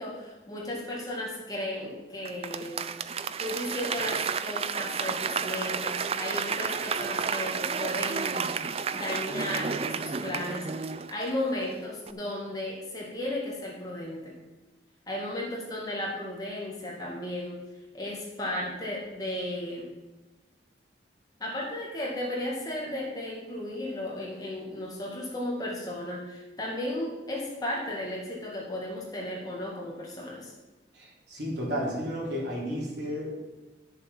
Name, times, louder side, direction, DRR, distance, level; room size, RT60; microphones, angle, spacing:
voice 1, 0.0-2.8 3.4-8.5 8.9-14.4 15.1-17.6 17.9-19.9 21.4-30.5, left 1 dB, 20° left, -3 dB, 2.1 m, -35 dB
Applause / Crowd, 2.2-11.7 12.1-12.2, right 6 dB, 30° right, 0.4 m, -31 dB
voice 2, 30.9-33.4, equal, 65° right, -4 dB, 3.8 m, -32 dB
11.5 x 6.9 x 5.7 m, 1.1 s
head